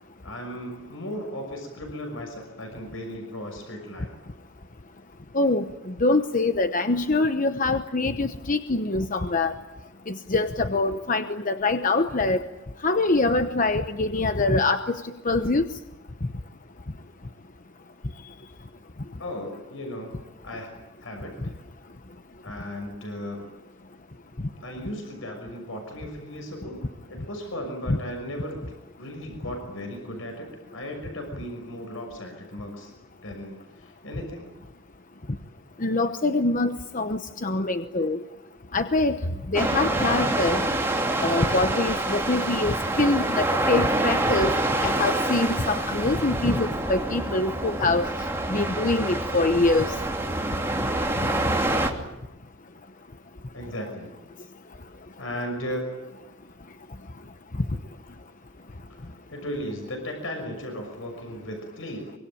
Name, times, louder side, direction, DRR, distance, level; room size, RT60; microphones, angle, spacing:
voice 1, 0.2-4.1 19.2-20.2 20.4-20.7 21.0-21.3 22.4-23.5 24.6-28.6 29.0-32.9 33.2-34.5 53.5-54.1 55.2-56.0 59.0-62.1, equal, 80° left, 3 dB, 6.3 m, -36 dB
voice 2, 5.3-5.7 6.0-9.5 10.1-12.4 12.8-15.0 15.2-15.6 27.9-28.0 35.8-38.2 38.7-39.2 39.5-40.6 41.2-44.5 44.8-48.1 48.5-49.9, left 2 dB, 40° left, 8 dB, 1.0 m, -24 dB
sound 1, 39.5-51.9, right 2 dB, 15° right, 2.8 m, -26 dB
25.0 x 24.5 x 9.0 m, 0.95 s
head